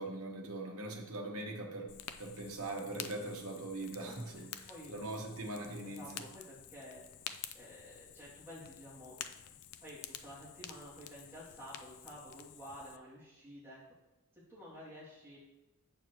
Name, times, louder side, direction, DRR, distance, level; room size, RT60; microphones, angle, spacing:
voice 1, 0.0-6.2, right 2 dB, 70° right, 1 dB, 1.2 m, -42 dB
Fire, 1.9-13.0, left 10 dB, 85° left, 0.4 m, -50 dB
voice 2, 4.0-5.0 5.8-7.0 7.5-9.3 9.8-13.8 14.3-15.4, equal, 10° right, -8 dB, 2.5 m, -51 dB
8.0 x 6.6 x 3.0 m, 0.99 s
head